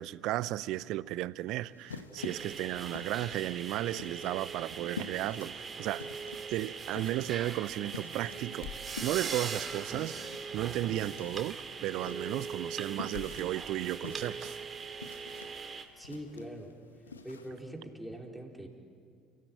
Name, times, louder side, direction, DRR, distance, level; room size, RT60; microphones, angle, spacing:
voice 1, 0.0-6.0 6.5-8.7 9.0-14.6, right 15 dB, 60° right, 0.6 m, -34 dB
sound 1, 1.5-17.7, left 4 dB, 90° left, 1.0 m, -49 dB
sound 2, 2.2-15.8, right 5 dB, 35° right, 2.3 m, -41 dB
sound 3, 8.6-8.9 11.3-11.5 13.1-13.4, left 8 dB, 65° left, 1.8 m, -44 dB
voice 2, 16.0-16.8 17.2-18.7, equal, ahead, 4.3 m, -43 dB
29.5 x 16.0 x 9.1 m
figure-of-eight pair, 60°, 0 cm